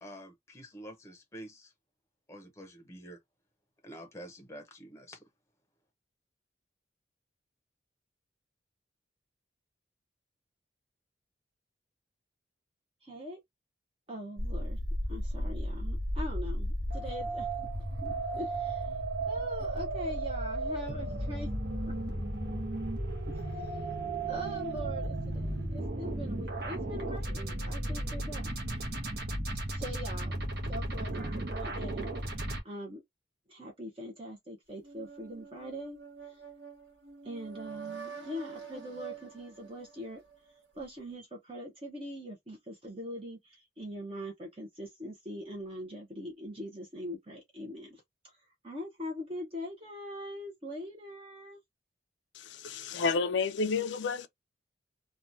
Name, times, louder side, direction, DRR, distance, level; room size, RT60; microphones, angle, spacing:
voice 1, 0.0-1.7 2.3-3.2 3.8-5.3, equal, 15° left, 0.7 m, -47 dB
voice 2, 13.0-13.4 14.1-14.8 15.1-17.5 18.0-18.9 19.3-21.5 21.8-21.9 23.2-23.8 24.3-28.5 29.7-32.4 32.6-33.0 33.5-36.4 37.2-40.2 40.8-48.4 48.6-51.6, equal, 30° right, 0.8 m, -42 dB
sound 1, 14.4-32.6, right 1 dB, 55° right, 0.9 m, -34 dB
sound 2, 34.8-40.6, right 6 dB, 70° right, 1.4 m, -47 dB
voice 3, 52.3-54.3, left 4 dB, 70° left, 0.4 m, -30 dB
2.9 x 2.3 x 2.6 m
head